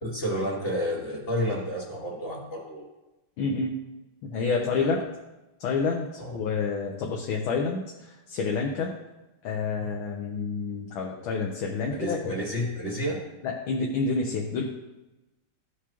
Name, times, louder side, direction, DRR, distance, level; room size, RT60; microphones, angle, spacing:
voice 1, 0.0-2.8 4.6-4.9 6.2-6.4 9.8-9.9 11.9-13.2, equal, 30° left, -3 dB, 2.0 m, -31 dB
voice 2, 3.4-3.8 4.2-5.0 5.6-7.8 8.3-8.9 9.4-12.3 13.4-14.6, left 4 dB, 75° left, 0 dB, 1.6 m, -28 dB
13.0 x 4.8 x 3.0 m, 1.0 s
omnidirectional pair, 2.3 m